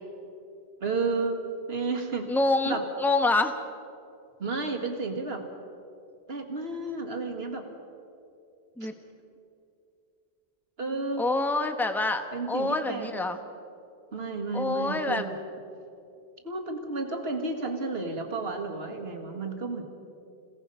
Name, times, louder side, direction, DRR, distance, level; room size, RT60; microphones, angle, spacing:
voice 1, 0.8-1.4 1.7-2.3 2.7-2.8 4.4-5.4 6.3-7.7 8.8-8.9 10.8-11.2 12.3-13.2 14.1-15.3 16.4-19.8, right 3 dB, 75° right, 3 dB, 2.1 m, -32 dB
voice 2, 2.3-3.5 8.8-8.9 11.2-13.4 14.5-15.2, left 2 dB, ahead, 7 dB, 1.0 m, -26 dB
27.5 x 17.0 x 5.6 m, 2.6 s
omnidirectional pair, 1.1 m